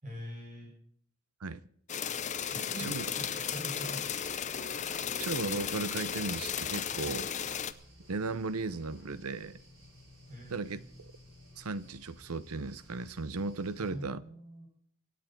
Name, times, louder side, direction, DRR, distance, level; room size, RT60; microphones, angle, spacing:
voice 1, 0.0-0.7 2.4-4.3 4.8-5.2 10.3-10.8 13.8-14.7, equal, 35° right, 6.9 m, -44 dB
sound 1, 1.9-7.7, left 8 dB, 35° left, 0.6 m, -35 dB
sound 2, 2.0-13.9, equal, 70° right, 6.8 m, -56 dB
voice 2, 4.9-7.3 8.1-9.6 10.5-11.1 11.6-14.2, right 3 dB, 85° right, 0.8 m, -36 dB
25.0 x 9.3 x 4.5 m
head